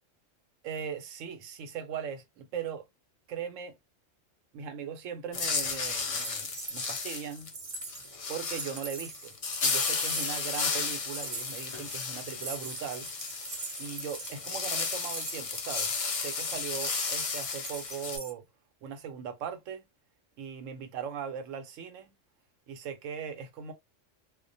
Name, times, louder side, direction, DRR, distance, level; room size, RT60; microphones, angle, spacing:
voice 1, 0.6-2.8 3.3-3.8 4.5-7.5 8.3-9.3 9.6-13.1 13.8-18.4 18.8-19.8 20.4-22.1 22.7-23.7, right 7 dB, 90° right, 1.0 m, -39 dB
sound 1, 5.3-18.2, left 4 dB, 55° left, 0.4 m, -33 dB
sound 2, 6.1-18.3, right 3 dB, 45° right, 0.4 m, -43 dB
2.3 x 2.1 x 2.5 m
omnidirectional pair, 1.3 m